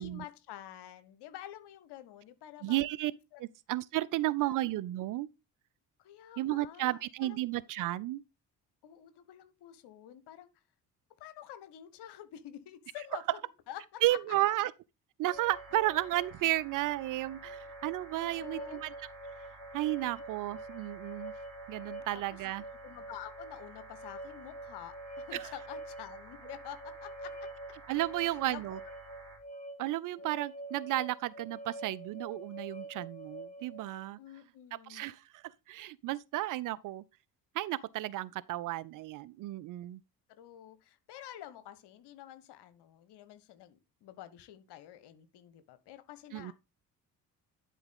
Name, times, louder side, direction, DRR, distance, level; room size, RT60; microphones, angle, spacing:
voice 1, 0.0-2.8 3.3-3.4 4.2-4.5 6.0-7.0 7.3-7.4 8.8-10.5 11.2-13.4 13.7-14.4 18.1-18.8 22.1-22.4 22.8-27.5 28.2-28.8 34.2-35.1 40.3-46.5, left 12 dB, 55° left, 1.2 m, -48 dB
voice 2, 2.6-3.1 3.4-5.3 6.4-8.2 14.0-14.7 15.2-18.9 19.7-21.3 21.7-22.6 25.3-25.5 27.9-28.8 29.8-34.2 34.9-37.0 37.5-40.0 46.3-46.5, right 16 dB, 45° right, 0.5 m, -33 dB
sound 1, 15.2-34.0, right 1 dB, 15° left, 1.7 m, -46 dB
sound 2, 15.3-29.4, right 3 dB, 80° right, 2.7 m, -53 dB
11.0 x 4.8 x 3.7 m
figure-of-eight pair, 45°, 48 cm